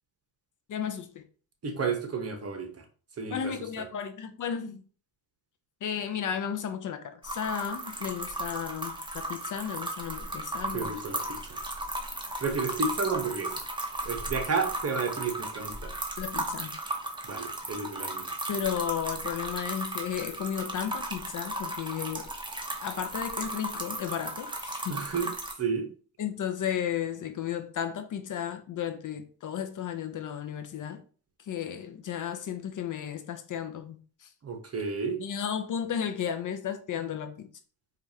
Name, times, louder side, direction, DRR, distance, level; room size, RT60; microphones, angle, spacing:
voice 1, 0.7-1.2 3.3-4.8 5.8-11.0 16.2-16.8 18.5-22.3 22.8-25.0 26.2-31.0 31.4-34.3 35.2-37.5, left 8 dB, 50° left, 0.5 m, -34 dB
voice 2, 1.6-2.8 3.2-3.9 10.7-11.6 12.4-13.6 14.0-15.9 17.2-18.3 24.9-25.3 25.6-25.9 34.4-35.2, right 4 dB, 35° right, 1.0 m, -32 dB
sound 1, 7.2-25.5, right 1 dB, 10° right, 0.8 m, -35 dB
4.4 x 2.5 x 2.8 m
cardioid pair, 85°, 41 cm